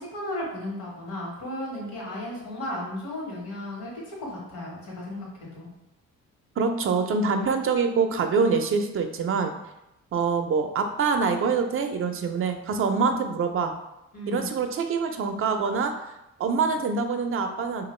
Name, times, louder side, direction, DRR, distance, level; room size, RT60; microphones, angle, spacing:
voice 1, 0.0-5.7 14.1-14.5, left 1 dB, 85° left, -3 dB, 1.3 m, -35 dB
voice 2, 6.6-9.5 10.1-13.7 14.3-15.9 16.4-17.8, right 5 dB, 45° right, 6 dB, 0.4 m, -25 dB
2.9 x 2.4 x 3.1 m, 0.91 s
cardioid pair, 90°, 30 cm